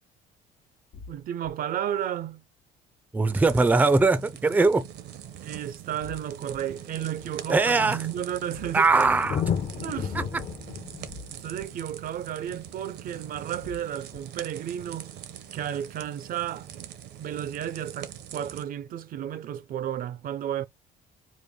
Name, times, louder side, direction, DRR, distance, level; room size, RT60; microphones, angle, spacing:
sound 1, 0.9-1.5 3.5-4.0 6.0-6.6 8.5-9.1 11.1-11.7 13.6-14.2, left 4 dB, 85° left, 1.2 m, -45 dB
voice 1, 1.1-2.4 5.4-8.9 9.8-10.3 11.3-15.2 15.5-16.7 17.2-20.7, right 10 dB, 55° right, 0.5 m, -33 dB
voice 2, 3.1-4.8 7.5-8.0 8.7-9.4, right 3 dB, 10° right, 0.5 m, -21 dB
sound 2, 3.3-18.6, right 11 dB, 80° right, 0.9 m, -43 dB
Thunder, 5.0-5.1 6.0-6.1 6.3-13.7 15.3-15.4, left 7 dB, 45° left, 0.7 m, -35 dB
5.1 x 2.1 x 3.6 m
cardioid pair, 110°, 17 cm